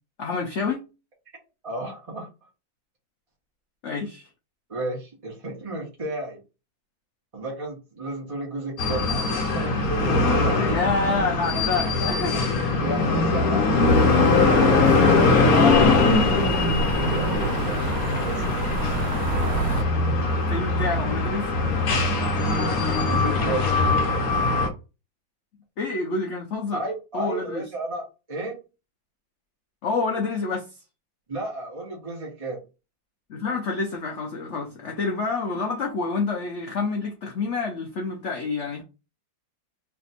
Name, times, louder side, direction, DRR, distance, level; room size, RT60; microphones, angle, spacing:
voice 1, 0.2-0.8 3.8-4.2 10.6-12.4 15.5-16.0 20.3-21.5 25.8-26.8 27.1-27.6 29.8-30.6 33.3-38.8, left 4 dB, 85° left, 0.6 m, -27 dB
voice 2, 1.6-2.3 4.7-6.4 7.3-10.7 12.0-13.7 17.1-18.4 23.0-23.7 26.7-28.6 31.3-32.6, right 2 dB, 25° right, 0.7 m, -33 dB
sound 1, 8.8-24.7, left 3 dB, 65° left, 1.0 m, -21 dB
sound 2, 13.9-19.8, right 3 dB, 55° right, 0.8 m, -29 dB
3.3 x 2.6 x 4.1 m
omnidirectional pair, 2.1 m